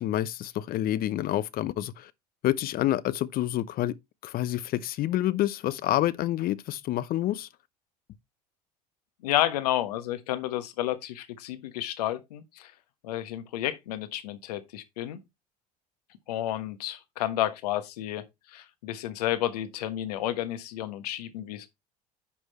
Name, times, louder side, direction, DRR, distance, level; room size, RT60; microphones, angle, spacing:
voice 1, 0.0-2.1 2.4-3.9 4.2-7.5, left 13 dB, 50° left, 0.7 m, -28 dB
voice 2, 9.2-12.7 13.0-15.2 16.3-21.7, left 13 dB, 75° left, 1.3 m, -31 dB
9.9 x 6.3 x 3.0 m
hypercardioid pair, 70°, 20 cm